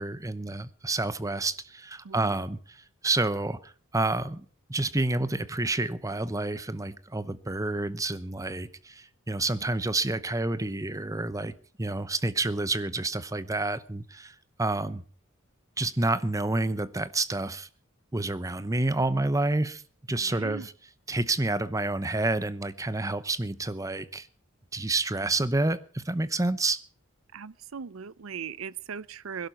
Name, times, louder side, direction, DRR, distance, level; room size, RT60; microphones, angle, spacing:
voice 1, 0.0-11.5 11.8-15.0 15.8-17.7 18.1-19.8 20.1-20.7 21.1-24.3 24.7-26.8, right 2 dB, 15° right, 0.8 m, -29 dB
voice 2, 2.0-2.4 20.2-20.7 27.3-29.5, right 6 dB, 85° right, 0.6 m, -39 dB
21.5 x 12.0 x 4.5 m
head